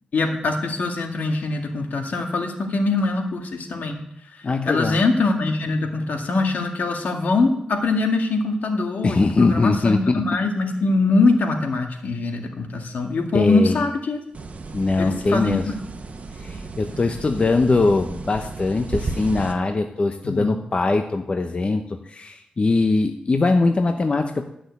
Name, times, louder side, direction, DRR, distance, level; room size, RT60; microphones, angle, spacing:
voice 1, 0.1-4.0 4.3-14.2 15.0-15.6 20.2-20.6, left 3 dB, 75° left, 3 dB, 2.0 m, -23 dB
voice 2, 4.4-5.0 9.0-10.2 13.3-13.9 14.7-15.6 16.4-24.5, left 3 dB, 40° left, 5 dB, 0.9 m, -21 dB
sound 1, 14.3-19.5, right 3 dB, 50° right, 1.2 m, -34 dB
13.0 x 6.3 x 8.1 m, 0.77 s
cardioid pair, 85°, 3 cm